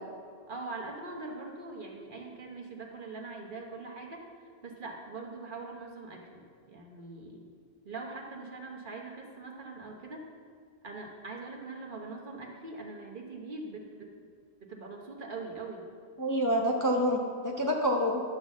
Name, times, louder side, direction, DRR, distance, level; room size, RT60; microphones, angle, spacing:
voice 1, 0.5-4.3 4.6-7.4 7.8-10.2 10.8-14.1 14.7-15.8, right 3 dB, 50° right, 0 dB, 1.3 m, -42 dB
voice 2, 16.2-18.2, equal, 20° left, -1 dB, 0.8 m, -27 dB
11.5 x 4.0 x 7.2 m, 2.1 s
omnidirectional pair, 1.1 m